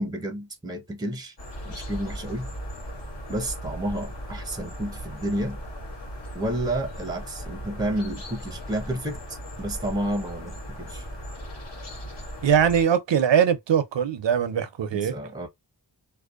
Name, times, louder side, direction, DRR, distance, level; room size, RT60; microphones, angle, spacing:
voice 1, 0.0-1.3 1.7-2.5 3.3-5.6 6.3-11.1 14.9-15.5, right 1 dB, 10° right, 0.6 m, -31 dB
sound 1, 1.4-12.8, equal, 70° left, 1.1 m, -37 dB
voice 2, 12.4-15.1, right 8 dB, 80° right, 0.6 m, -21 dB
2.6 x 2.1 x 2.4 m
wide cardioid pair, 50°, 44 cm